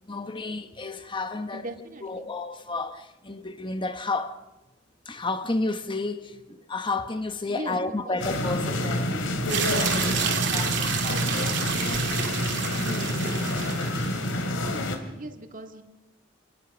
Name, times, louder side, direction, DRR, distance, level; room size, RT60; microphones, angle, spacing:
voice 1, 0.0-1.7 2.0-4.4 5.0-11.7, left 3 dB, 25° left, 1.0 m, -32 dB
voice 2, 1.5-2.3 7.5-8.2 15.1-15.8, right 1 dB, 45° right, 2.2 m, -39 dB
sound 1, 8.2-15.0, left 1 dB, 80° left, 3.0 m, -27 dB
sound 2, 9.5-14.3, right 8 dB, 65° right, 2.8 m, -30 dB
27.0 x 19.0 x 6.1 m
head